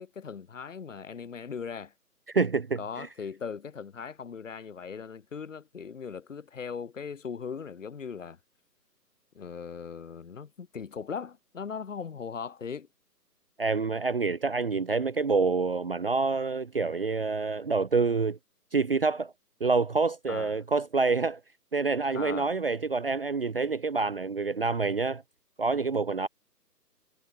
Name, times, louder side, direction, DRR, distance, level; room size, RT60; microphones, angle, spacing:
voice 1, 0.0-1.9 2.8-8.4 9.3-12.9 20.3-20.5 22.1-22.5, left 6 dB, 50° left, 4.6 m, -39 dB
voice 2, 2.3-3.1 13.6-18.4 18.7-19.3 19.6-21.4 21.7-25.2 25.6-26.3, right 4 dB, 35° right, 0.7 m, -27 dB
figure-of-eight pair, 140°, 49 cm